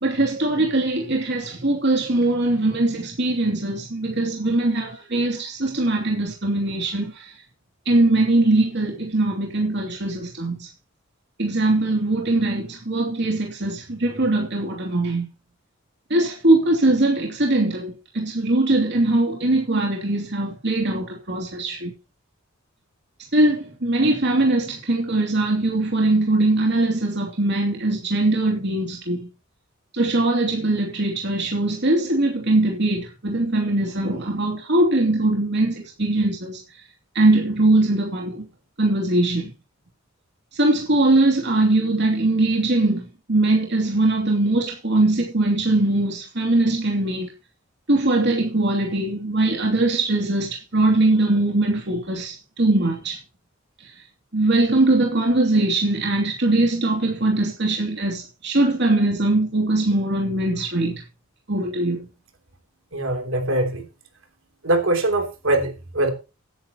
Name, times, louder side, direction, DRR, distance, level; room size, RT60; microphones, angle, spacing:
voice 1, 0.0-7.3 7.9-10.7 11.4-15.3 16.1-21.9 23.3-29.3 29.9-36.6 37.1-38.4 38.8-39.5 40.5-47.3 47.9-53.2 54.3-61.0 61.5-62.1, right 2 dB, 60° right, 2.8 m, -21 dB
voice 2, 62.9-63.8 64.6-66.1, right 1 dB, 75° right, 3.3 m, -22 dB
17.0 x 10.0 x 3.0 m
head